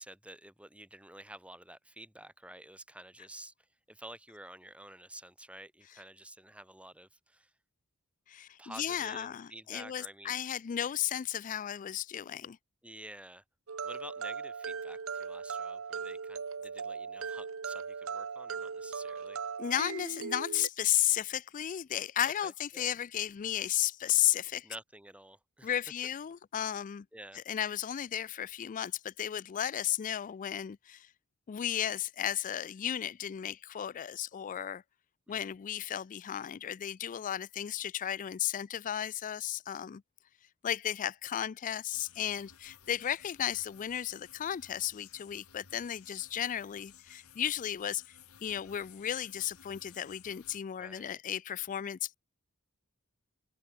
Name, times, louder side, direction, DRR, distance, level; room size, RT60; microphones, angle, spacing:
voice 1, 0.0-7.5 8.6-10.4 12.8-13.4 13.8-19.4 22.4-22.9 24.6-25.7 27.1-27.4 35.3-35.5 50.8-51.2, right 1 dB, 5° right, 5.5 m, -50 dB
voice 2, 8.3-12.6 19.6-24.7 25.6-27.1 27.3-31.1 31.5-34.8 35.3-40.0 40.6-52.1, left 11 dB, 35° left, 0.3 m, -34 dB
sound 1, 13.7-20.7, right 5 dB, 70° right, 0.8 m, -39 dB
sound 2, 41.9-50.6, left 9 dB, 90° left, 2.6 m, -57 dB
open air
head